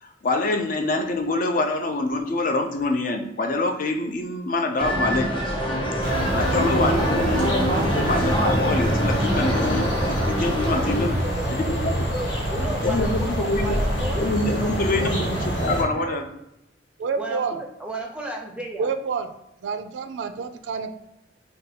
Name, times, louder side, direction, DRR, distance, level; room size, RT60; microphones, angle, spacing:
voice 1, 0.0-5.3 6.3-11.2 11.5-12.1 12.8-13.8 14.2-16.3, left 2 dB, 45° left, 5 dB, 0.4 m, -25 dB
sound 1, 4.8-11.1, equal, 25° left, 0.9 m, -25 dB
sound 2, 6.0-15.8, equal, 85° left, 1.4 m, -26 dB
voice 2, 11.2-11.7 12.1-14.3 14.6-15.2 17.2-18.9, right 2 dB, 5° right, 1 dB, 0.5 m, -34 dB
voice 3, 17.0-17.6 18.8-19.3 19.6-20.9, right 5 dB, 70° right, 9 dB, 0.3 m, -28 dB
2.6 x 2.3 x 4.1 m, 0.86 s
head